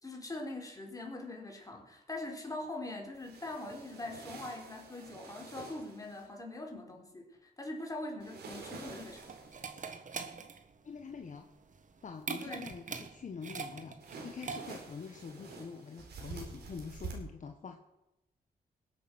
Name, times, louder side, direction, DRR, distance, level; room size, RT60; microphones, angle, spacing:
voice 1, 0.0-9.3 12.4-12.7, left 2 dB, 20° left, 2 dB, 4.0 m, -42 dB
sound 1, 3.1-6.3 8.2-9.7 14.0-17.1, right 4 dB, 90° right, 3.9 m, -48 dB
sound 2, 8.6-15.0, right 5 dB, 50° right, 1.5 m, -43 dB
voice 2, 10.8-11.5 12.0-17.8, left 5 dB, 50° left, 4 dB, 1.3 m, -45 dB
20.5 x 8.7 x 6.2 m, 0.93 s
cardioid pair, 80°, 17 cm